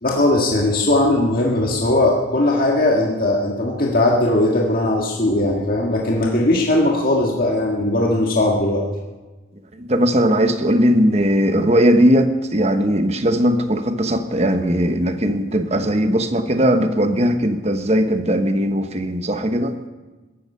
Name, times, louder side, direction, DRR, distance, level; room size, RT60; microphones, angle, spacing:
voice 1, 0.0-8.8, left 1 dB, 45° left, -2 dB, 1.7 m, -18 dB
voice 2, 9.8-19.7, equal, 35° right, 8 dB, 1.0 m, -18 dB
17.5 x 13.5 x 5.5 m, 1.2 s
head